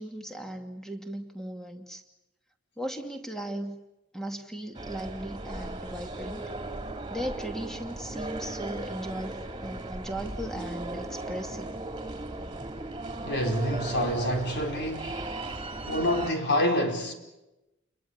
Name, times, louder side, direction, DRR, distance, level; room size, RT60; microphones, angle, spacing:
voice 1, 0.0-2.0 2.8-3.8 4.1-6.4 7.1-11.7, right 1 dB, ahead, 2.6 m, -37 dB
sound 1, 4.7-16.3, right 2 dB, 25° right, 3.2 m, -37 dB
voice 2, 13.2-15.2 15.8-17.1, equal, 55° left, 4.6 m, -27 dB
30.0 x 22.5 x 7.0 m
head